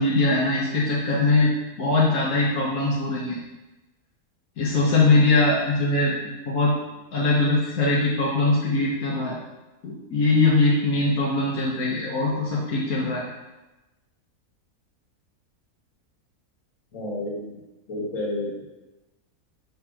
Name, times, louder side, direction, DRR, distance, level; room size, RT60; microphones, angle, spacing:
voice 1, 0.0-1.5 1.8-3.4 4.6-6.7 7.1-9.4 9.8-13.3, left 2 dB, 90° left, -5 dB, 1.5 m, -21 dB
voice 2, 16.9-17.5 17.9-18.6, left 1 dB, 65° left, -5 dB, 2.2 m, -30 dB
5.4 x 3.6 x 5.8 m, 1.0 s
omnidirectional pair, 1.5 m